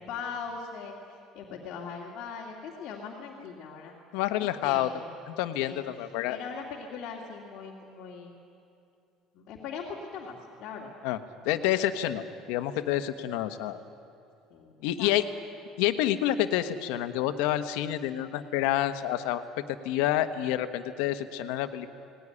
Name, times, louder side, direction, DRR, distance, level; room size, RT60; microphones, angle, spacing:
voice 1, 0.0-4.0 4.3-4.4 4.6-5.0 5.6-5.8 6.3-8.3 9.3-10.9 14.5-14.7 15.0-15.1, left 5 dB, 50° left, -2 dB, 2.4 m, -40 dB
voice 2, 4.1-4.9 5.3-6.4 11.0-11.2 11.4-13.8 14.8-15.2 15.8-21.9, left 12 dB, 85° left, 9 dB, 1.2 m, -28 dB
19.5 x 18.5 x 9.9 m, 2.6 s
cardioid pair, 150°, 0 cm